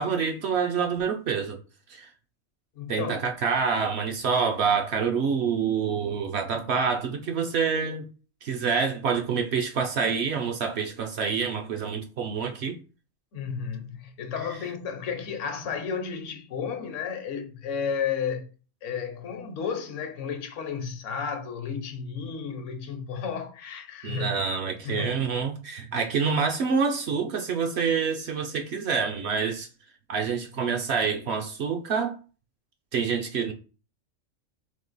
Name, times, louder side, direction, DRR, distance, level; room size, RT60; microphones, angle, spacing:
voice 1, 0.0-1.6 1.9-2.1 2.9-8.0 8.4-12.8 24.0-29.7 30.1-32.2 32.9-33.5, right 6 dB, 65° right, 0.8 m, -27 dB
voice 2, 2.8-3.2 13.3-18.5 18.8-24.3 24.8-25.2, left 6 dB, 70° left, 1.0 m, -32 dB
3.7 x 2.8 x 3.9 m
omnidirectional pair, 1.4 m